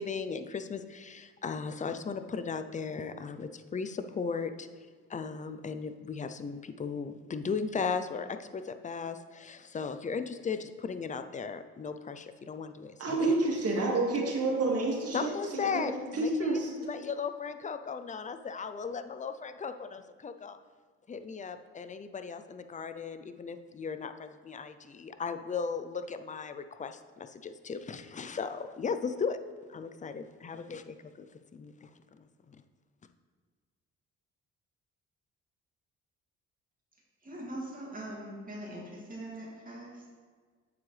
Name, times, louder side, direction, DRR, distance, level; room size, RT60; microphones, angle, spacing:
voice 1, 0.0-4.7 5.1-13.2 15.1-20.6 21.1-29.4 29.7-31.3 31.5-32.6, left 5 dB, 25° left, 10 dB, 0.5 m, -37 dB
voice 2, 13.0-16.7, right 2 dB, 55° right, -1 dB, 2.1 m, -29 dB
voice 3, 37.2-40.1, right 1 dB, 30° right, -4 dB, 2.4 m, -42 dB
8.8 x 7.5 x 3.3 m, 1.5 s
cardioid pair, 90°, 30 cm